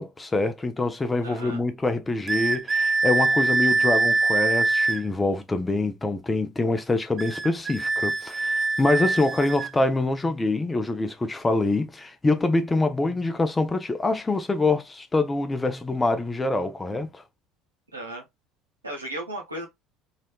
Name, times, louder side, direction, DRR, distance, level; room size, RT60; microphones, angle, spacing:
voice 1, 0.0-17.2, left 2 dB, 15° left, 0.7 m, -25 dB
voice 2, 1.2-1.6 17.9-18.2 18.8-19.7, right 1 dB, 85° right, 1.2 m, -35 dB
sound 1, 2.3-5.0 7.2-9.7, right 3 dB, 25° right, 0.4 m, -24 dB
3.1 x 2.9 x 2.2 m
figure-of-eight pair, 65°, 0 cm